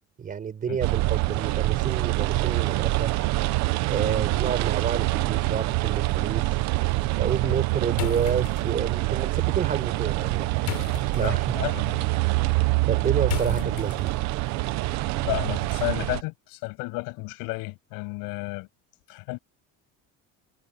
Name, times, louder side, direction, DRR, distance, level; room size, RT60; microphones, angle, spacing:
voice 1, 0.2-3.1 3.9-6.4 7.2-11.4 12.9-14.2, right 7 dB, 25° right, 4.8 m, -30 dB
sound 1, 0.8-16.2, right 20 dB, 55° right, 0.8 m, -25 dB
sound 2, 7.9-14.4, left 18 dB, 60° left, 4.2 m, -38 dB
voice 2, 11.1-12.0 13.4-13.8 15.2-18.7 19.1-19.4, left 26 dB, 85° left, 6.9 m, -32 dB
cardioid pair, 180°, 33 cm